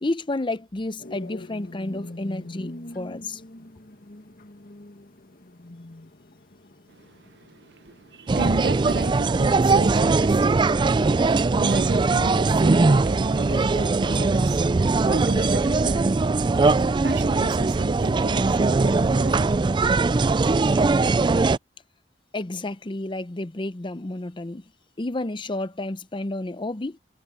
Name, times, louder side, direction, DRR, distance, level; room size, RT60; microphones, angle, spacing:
voice 1, 0.0-3.4 22.3-24.6 25.0-27.0, left 2 dB, 30° left, 0.7 m, -31 dB
sound 1, 1.0-9.7, left 1 dB, 55° left, 1.9 m, -43 dB
voice 2, 6.9-16.1 17.0-19.5 19.9-20.0, right 3 dB, 70° right, 0.8 m, -34 dB
sound 2, 8.3-21.6, right 3 dB, 25° right, 0.4 m, -20 dB
head